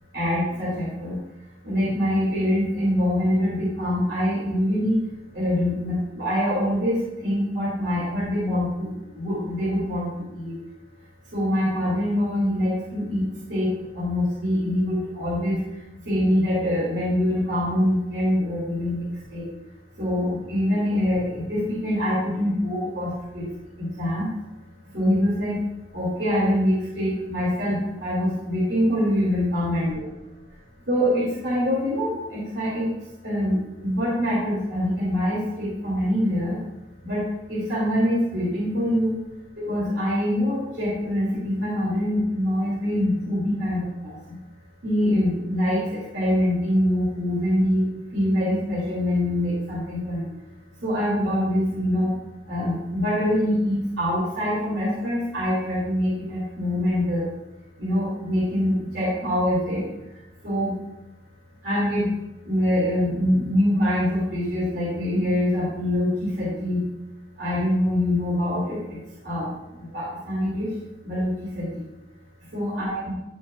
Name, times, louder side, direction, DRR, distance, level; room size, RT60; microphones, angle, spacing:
voice 1, 0.1-1.2 1.6-5.0 5.3-8.9 9.1-10.1 10.3-10.6 11.3-15.6 16.1-19.5 20.0-23.5 23.8-24.3 24.9-25.5 25.9-30.0 30.9-32.9 33.2-36.6 37.0-37.2 37.5-39.1 39.7-44.2 44.8-47.8 48.1-50.3 50.8-52.1 52.5-57.3 57.8-59.8 60.4-60.7 61.6-62.1 62.5-66.8 67.4-68.8 69.2-70.7 71.0-71.7 72.5-73.1, equal, 85° right, -8 dB, 2.7 m, -24 dB
9.4 x 7.1 x 2.4 m, 0.96 s
head